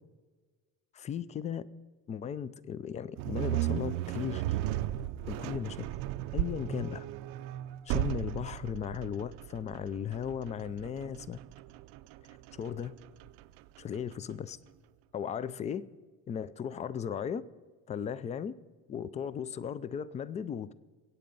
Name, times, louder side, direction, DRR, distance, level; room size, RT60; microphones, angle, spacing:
voice 1, 0.9-1.6 2.1-4.6 5.3-5.9 6.3-7.1 7.9-11.4 12.6-12.9 13.8-14.6 15.1-15.8 16.3-17.4 17.9-18.5 18.9-20.7, left 8 dB, 20° left, 0.4 m, -36 dB
sound 1, 3.2-14.3, right 14 dB, 70° right, 0.7 m, -36 dB
22.5 x 8.7 x 5.4 m
cardioid pair, 150°, 34 cm